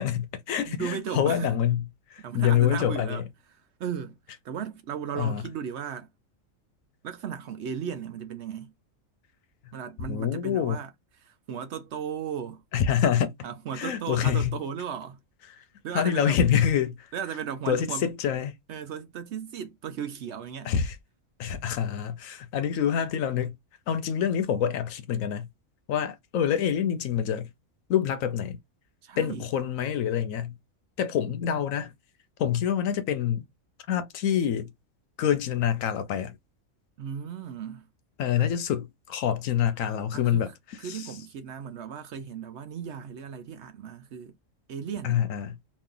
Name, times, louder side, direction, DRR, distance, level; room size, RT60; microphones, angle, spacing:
voice 1, 0.0-1.8 2.1-3.2 5.1-5.4 10.1-10.8 12.7-13.3 13.7-14.5 15.9-17.1 17.7-18.6 20.6-21.0 21.4-23.5 23.9-25.5 25.9-27.5 27.9-28.6 29.2-30.5 31.0-31.9 32.4-33.5 33.9-34.7 35.2-36.4 38.2-40.5 40.8-41.1 45.0-45.6, left 9 dB, 75° left, 1.0 m, -26 dB
voice 2, 0.6-1.5 2.2-3.2 3.5-4.2 4.4-6.1 7.0-8.7 9.7-10.9 11.2-12.6 13.4-15.2 15.8-16.4 17.1-18.1 18.7-20.7 29.0-29.5 37.0-37.9 40.1-44.3 44.7-45.3, right 8 dB, 65° right, 0.7 m, -36 dB
3.0 x 2.5 x 3.7 m
omnidirectional pair, 1.4 m